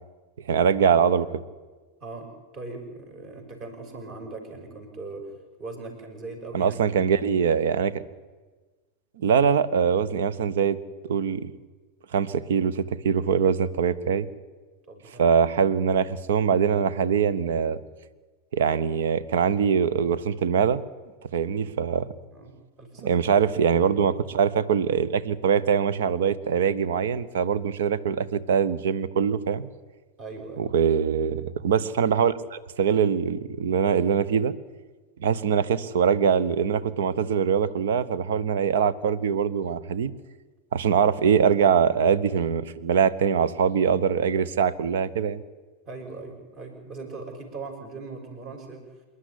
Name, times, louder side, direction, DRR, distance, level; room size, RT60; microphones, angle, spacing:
voice 1, 0.5-1.3 6.5-8.0 9.2-10.8 11.1-11.5 12.1-14.3 15.2-17.8 18.5-20.8 21.3-22.1 23.0-29.7 30.6-34.5 35.2-40.1 40.7-45.4, right 7 dB, 60° right, 17 dB, 1.0 m, -23 dB
voice 2, 2.0-5.3 5.6-7.0 14.9-15.3 22.3-23.2 30.2-30.7 45.9-48.9, right 3 dB, 35° right, 3 dB, 5.9 m, -40 dB
27.0 x 11.0 x 9.9 m, 1.3 s
figure-of-eight pair, 90°, 0 cm